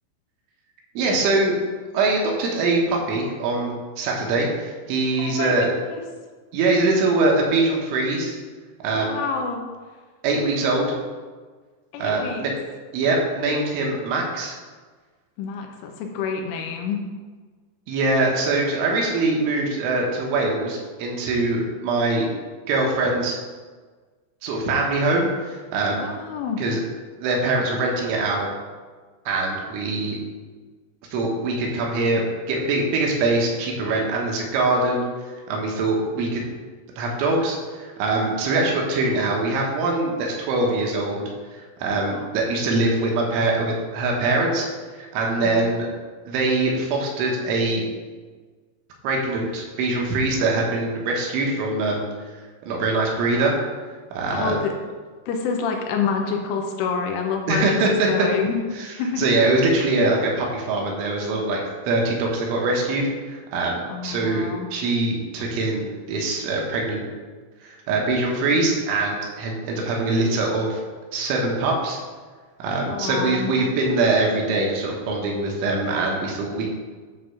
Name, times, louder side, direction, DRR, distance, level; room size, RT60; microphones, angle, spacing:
voice 1, 1.0-1.6 1.9-5.7 6.5-8.4 8.8-9.2 10.2-11.0 12.0-12.5 12.9-14.6 17.9-22.3 22.7-23.4 24.4-26.1 26.6-26.8 27.2-28.5 29.3-30.2 31.1-35.0 35.5-36.4 37.0-44.7 45.0-45.9 46.3-47.8 49.0-52.0 52.7-53.5 54.1-54.6 57.5-58.1 58.8-58.9 59.2-61.6 61.9-67.1 67.6-70.8 71.1-72.0 72.6-76.7, right 2 dB, 75° right, -1 dB, 3.4 m, -23 dB
voice 2, 5.2-6.0 8.9-9.6 11.9-12.5 15.4-17.0 26.0-26.6 42.0-42.4 45.4-45.7 54.3-54.7 55.3-57.8 58.1-58.6 59.0-59.2 63.9-64.7 72.9-73.5, left 5 dB, 85° left, 3 dB, 3.2 m, -28 dB
9.5 x 3.6 x 6.6 m, 1.4 s
omnidirectional pair, 5.8 m